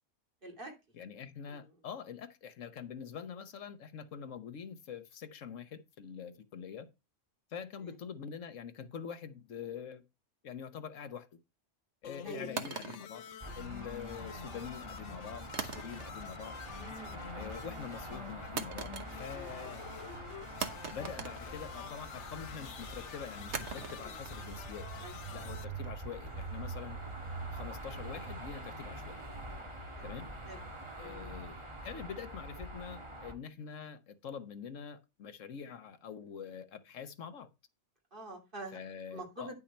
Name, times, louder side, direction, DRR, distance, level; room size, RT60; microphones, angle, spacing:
voice 1, 0.4-0.7 1.5-1.6 12.2-12.5 16.8-17.2 24.0-24.2 25.0-25.2 30.0-30.1 30.5-30.6 31.0-31.3 38.1-38.8 39.1-39.5, right 2 dB, 45° right, 3.1 m, -46 dB
voice 2, 0.9-6.9 7.5-10.0 10.4-11.3 12.0-13.2 13.6-16.5 17.3-19.8 20.9-24.9 25.3-27.0 27.5-29.2 30.0-30.3 31.0-31.6 31.8-37.5 38.7-39.5, left 7 dB, 90° left, 1.4 m, -45 dB
sound 1, 12.0-25.7, left 8 dB, 70° left, 1.0 m, -48 dB
sound 2, 12.6-14.0 15.5-16.4 16.7-17.1 18.6-19.5 19.8-19.9 20.6-22.1 23.5-26.5, right 6 dB, 65° right, 1.4 m, -43 dB
sound 3, 13.4-33.3, right 2 dB, 25° right, 1.6 m, -45 dB
10.0 x 6.3 x 4.4 m
omnidirectional pair, 1.3 m